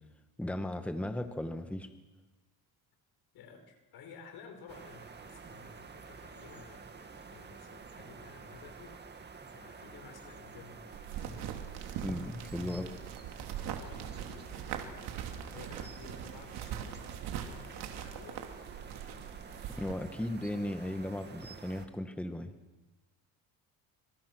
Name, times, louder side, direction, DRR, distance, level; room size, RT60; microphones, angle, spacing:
voice 1, 0.4-1.9 11.3-11.5 12.0-12.9 19.7-22.5, left 1 dB, 5° left, 7 dB, 1.4 m, -36 dB
voice 2, 3.3-11.0 12.8-13.0 13.7-18.5, left 5 dB, 75° left, 6 dB, 5.3 m, -54 dB
sound 1, 4.7-21.9, right 5 dB, 25° right, 2.2 m, -50 dB
sound 2, 10.9-19.9, right 9 dB, 90° right, 3.0 m, -41 dB
27.5 x 26.5 x 6.2 m, 1.2 s
cardioid pair, 135°, 38 cm